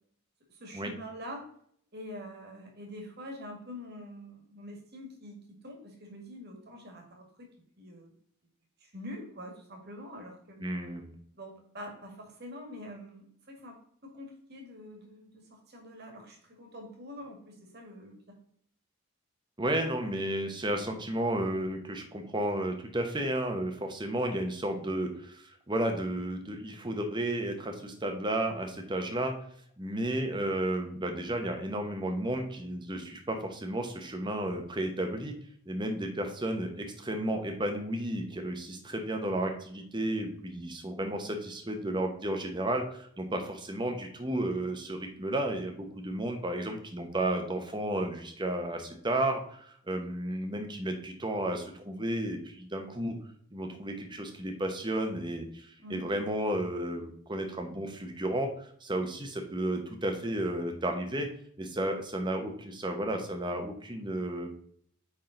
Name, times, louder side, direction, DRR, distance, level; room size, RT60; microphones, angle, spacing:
voice 1, 0.5-1.5 1.9-7.5 7.8-8.1 8.8-10.6 11.4-18.4 55.8-56.1, equal, 50° right, 2 dB, 1.8 m, -45 dB
voice 2, 10.6-11.1 19.6-29.3 29.8-35.3 35.7-53.1 53.5-61.3 61.6-64.5, right 1 dB, 20° right, 4 dB, 0.9 m, -33 dB
8.8 x 3.7 x 3.8 m, 0.64 s
head